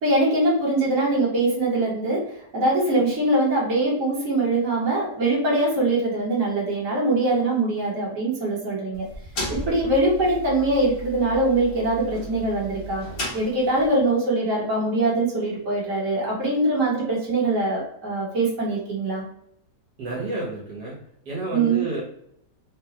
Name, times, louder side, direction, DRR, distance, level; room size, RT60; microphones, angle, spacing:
voice 1, 0.0-9.0 9.5-13.0 13.3-19.2 21.5-21.8, right 2 dB, 55° right, -6 dB, 1.5 m, -23 dB
sound 1, 8.9-14.0, right 1 dB, 45° left, 0.8 m, -35 dB
voice 2, 20.0-21.0 21.2-22.0, right 2 dB, 75° right, -5 dB, 1.7 m, -30 dB
3.8 x 2.3 x 2.8 m, 0.73 s
omnidirectional pair, 1.8 m